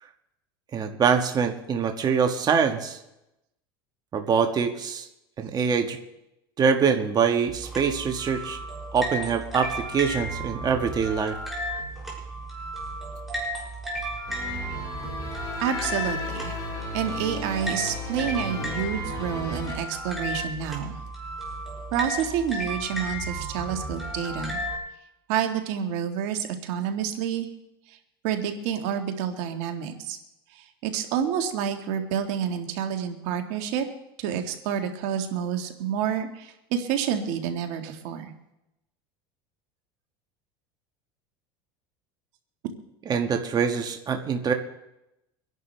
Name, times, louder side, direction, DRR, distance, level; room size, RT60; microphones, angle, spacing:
voice 1, 0.7-3.0 4.1-5.1 5.4-6.0 6.6-8.6 8.9-11.4 43.1-44.5, right 6 dB, 35° right, 5 dB, 1.5 m, -24 dB
sound 1, 7.5-24.8, right 1 dB, ahead, 6.4 m, -34 dB
sound 2, 14.3-19.8, left 3 dB, 30° left, 7.2 m, -35 dB
voice 2, 15.6-16.6 16.9-21.0 21.9-24.6 25.3-27.5 27.9-28.0 28.2-30.2 30.5-33.9 34.2-38.3, right 8 dB, 65° right, 5 dB, 1.7 m, -29 dB
25.0 x 11.0 x 3.4 m, 0.89 s
supercardioid pair, 100°, 12 cm